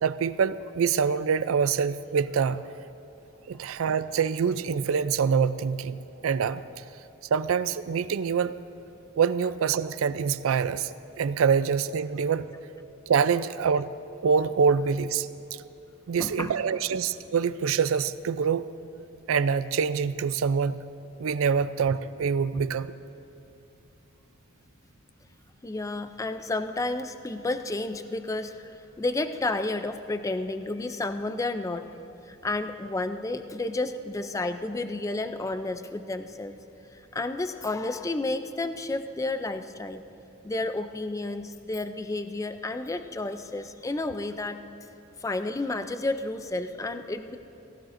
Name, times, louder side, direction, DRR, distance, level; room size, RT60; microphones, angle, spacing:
voice 1, 0.0-2.7 3.5-6.6 7.3-8.5 9.2-12.5 13.1-13.9 14.2-15.3 16.1-18.6 19.3-20.8 21.2-22.9, right 6 dB, 80° right, 14 dB, 0.4 m, -25 dB
voice 2, 16.2-16.6 25.6-28.7 29.0-31.9 32.2-36.6 36.9-40.0 40.4-44.6 45.2-47.4, left 2 dB, 15° left, 9 dB, 0.4 m, -31 dB
17.5 x 16.5 x 2.6 m, 2.8 s
head